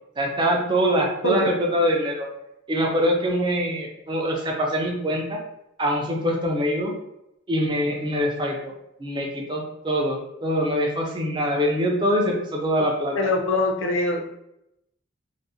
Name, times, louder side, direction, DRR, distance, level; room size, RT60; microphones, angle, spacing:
voice 1, 0.2-2.3 2.7-5.4 5.8-6.9 7.5-8.7 9.0-13.2, equal, 25° right, 0 dB, 0.4 m, -24 dB
voice 2, 13.2-14.4, left 2 dB, 70° left, 3 dB, 0.4 m, -23 dB
2.5 x 2.1 x 2.6 m, 0.82 s
head